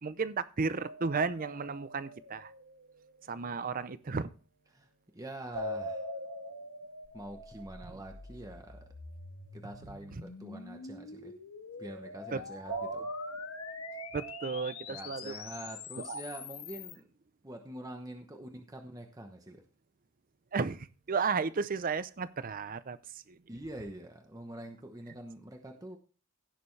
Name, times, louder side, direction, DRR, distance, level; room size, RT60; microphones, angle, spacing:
voice 1, 0.0-2.5 3.2-4.3 10.1-10.2 12.3-12.4 14.1-15.4 16.0-16.2 20.5-23.4, right 5 dB, 40° right, 15 dB, 0.6 m, -34 dB
sound 1, 0.8-2.8 5.5-8.4 12.7-14.9, right 1 dB, 75° right, 1.5 m, -41 dB
voice 2, 4.7-6.1 7.1-8.8 9.5-11.3 11.8-13.1 14.9-17.1 17.4-19.6 23.5-26.0, right 1 dB, 15° right, 4 dB, 1.0 m, -45 dB
sound 2, 7.0-17.0, left 5 dB, 80° left, 1.5 m, -46 dB
16.0 x 6.9 x 3.3 m, 0.38 s
head